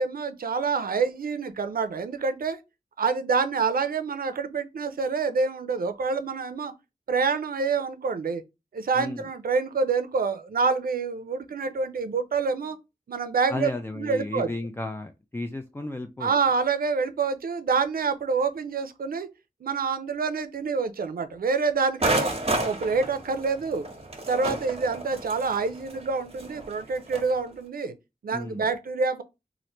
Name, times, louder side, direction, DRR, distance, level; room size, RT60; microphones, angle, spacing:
voice 1, 0.0-2.6 3.0-6.7 7.1-8.4 8.7-12.8 13.1-13.7 14.0-14.5 16.2-19.3 19.6-22.3 22.6-23.9 24.3-27.9 28.2-29.2, right 4 dB, 90° right, 0.4 m, -27 dB
voice 2, 13.5-16.3 28.3-28.6, left 2 dB, 15° left, 0.3 m, -33 dB
sound 1, 22.0-27.3, right 2 dB, 45° right, 0.9 m, -31 dB
3.1 x 2.4 x 2.9 m
wide cardioid pair, 55°, 15 cm